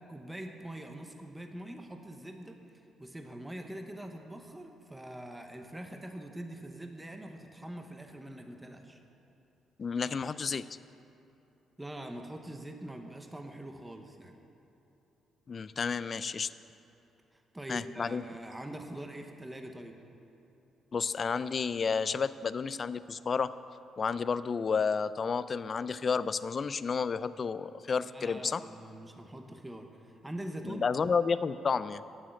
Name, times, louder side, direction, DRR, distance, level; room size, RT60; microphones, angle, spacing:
voice 1, 0.1-2.6 3.0-9.0 11.8-14.4 17.3-20.0 28.0-30.8, right 1 dB, 10° right, 4 dB, 0.9 m, -43 dB
voice 2, 9.8-10.7 15.5-16.5 17.7-18.2 20.9-23.5 24.0-28.6 30.6-32.0, left 5 dB, 40° left, 15 dB, 0.3 m, -31 dB
8.7 x 7.2 x 8.8 m, 2.9 s
cardioid pair, 90°, 0 cm